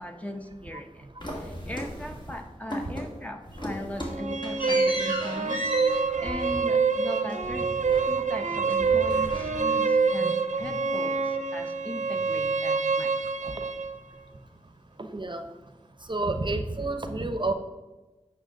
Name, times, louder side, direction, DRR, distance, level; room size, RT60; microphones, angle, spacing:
voice 1, 0.0-7.7 8.1-13.6, left 1 dB, 10° left, 4 dB, 0.9 m, -39 dB
sound 1, 1.2-2.4 2.7-3.2 3.5-8.4 8.7-10.0, equal, 40° left, 2.2 m, -36 dB
sound 2, 4.0-14.0, right 4 dB, 85° right, 0.6 m, -26 dB
voice 2, 15.0-15.4 16.1-17.5, right 2 dB, 40° right, 7 dB, 0.7 m, -29 dB
8.9 x 6.0 x 3.8 m, 1.1 s
wide cardioid pair, 50°, 12 cm